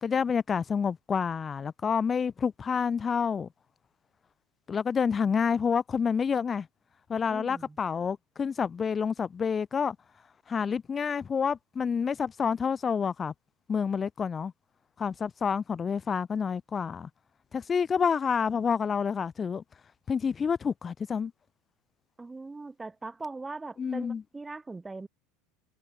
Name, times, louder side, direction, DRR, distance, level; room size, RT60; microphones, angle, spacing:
voice 1, 0.0-3.5 4.7-6.7 7.1-10.0 10.5-13.3 13.7-14.5 15.0-17.1 17.5-19.6 20.1-21.3 23.8-24.2, left 6 dB, 30° left, 1.2 m, -28 dB
voice 2, 7.3-7.8 22.2-25.1, right 3 dB, 15° right, 4.9 m, -40 dB
hypercardioid pair, 75°, 0 cm